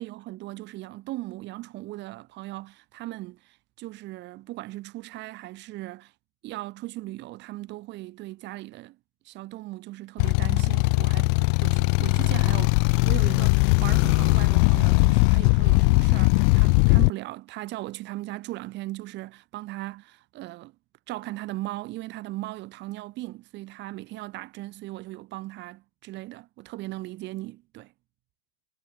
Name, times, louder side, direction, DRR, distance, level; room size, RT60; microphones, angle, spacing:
voice 1, 0.0-6.1 6.4-9.0 9.2-20.7 21.1-27.9, right 18 dB, 30° right, 3.2 m, -38 dB
sound 1, 10.2-17.1, left 40 dB or more, 35° left, 1.7 m, -20 dB
figure-of-eight pair, 120°, 38 cm